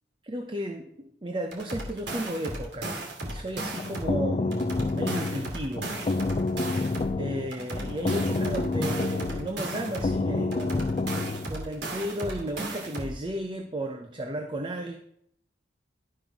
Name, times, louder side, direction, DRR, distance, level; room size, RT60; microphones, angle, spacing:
voice 1, 0.2-5.9 7.2-15.0, right 1 dB, 25° right, 4 dB, 0.8 m, -34 dB
sound 1, 1.5-4.2 4.5-7.2 7.5-10.2 10.5-13.2, right 1 dB, 70° right, 2.6 m, -35 dB
sound 2, 3.6-11.5, left 3 dB, 35° left, 0.4 m, -29 dB
12.0 x 5.4 x 6.0 m, 0.72 s
head